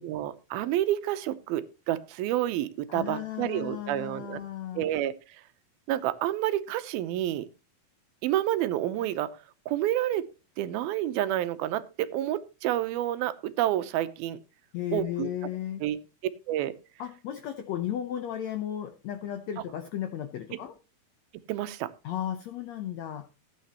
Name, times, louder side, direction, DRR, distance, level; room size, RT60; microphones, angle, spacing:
voice 1, 0.0-4.4 4.8-5.1 5.9-7.5 8.2-9.3 9.7-10.2 10.6-14.4 14.9-15.3 15.8-16.0 16.5-16.7 20.5-20.6 21.5-21.9, right 13 dB, 85° right, 12 dB, 2.7 m, -29 dB
voice 2, 2.9-4.9 14.7-15.8 17.0-20.8 22.0-23.3, left 10 dB, 80° left, 7 dB, 1.5 m, -35 dB
16.5 x 9.1 x 2.9 m, 0.30 s
omnidirectional pair, 4.2 m